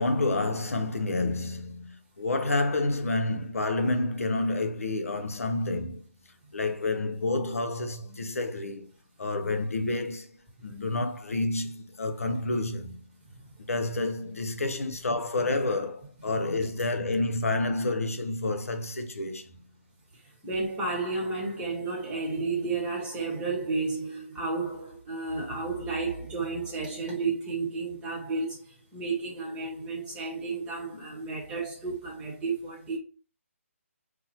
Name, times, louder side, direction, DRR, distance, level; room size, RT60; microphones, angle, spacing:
voice 1, 0.0-6.0 6.5-8.9 9.2-13.0 13.7-19.5, left 2 dB, 80° left, 0.6 m, -29 dB
voice 2, 20.4-33.0, right 3 dB, 10° right, 0.9 m, -32 dB
2.9 x 2.1 x 2.7 m
figure-of-eight pair, 150°, 8 cm